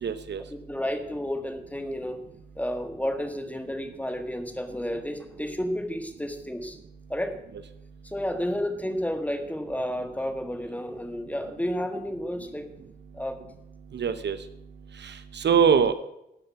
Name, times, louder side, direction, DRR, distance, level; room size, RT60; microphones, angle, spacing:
voice 1, 0.0-0.4 13.9-14.4 15.0-15.9, right 7 dB, 85° right, 11 dB, 0.9 m, -23 dB
voice 2, 0.7-2.2 2.5-6.8 7.1-7.3 8.0-12.7 13.1-13.4 15.7-15.8, equal, 10° left, 7 dB, 1.6 m, -31 dB
12.5 x 7.8 x 5.8 m, 0.83 s
wide cardioid pair, 100°, 17 cm